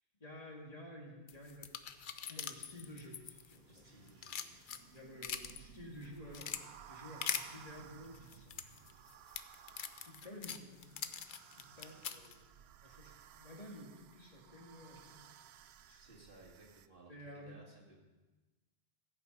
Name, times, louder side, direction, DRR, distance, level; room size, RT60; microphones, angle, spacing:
voice 1, 0.2-1.7 2.2-4.2 4.5-9.0 9.3-9.4 9.7-9.8 10.0-11.2 11.5-12.4 12.8-15.3 15.9-16.0 17.1-17.7, left 1 dB, 40° left, -2 dB, 2.2 m, -53 dB
sound 1, 1.3-3.8 4.1-5.6 6.0-6.6 7.2-7.4 8.1-12.3, left 8 dB, 60° left, 0.7 m, -42 dB
sound 2, 1.9-16.9, right 9 dB, 85° right, 0.8 m, -59 dB
voice 2, 3.7-4.5 16.0-18.0, right 2 dB, 60° right, -2 dB, 2.4 m, -59 dB
14.5 x 8.4 x 5.3 m, 1.2 s
omnidirectional pair, 1.0 m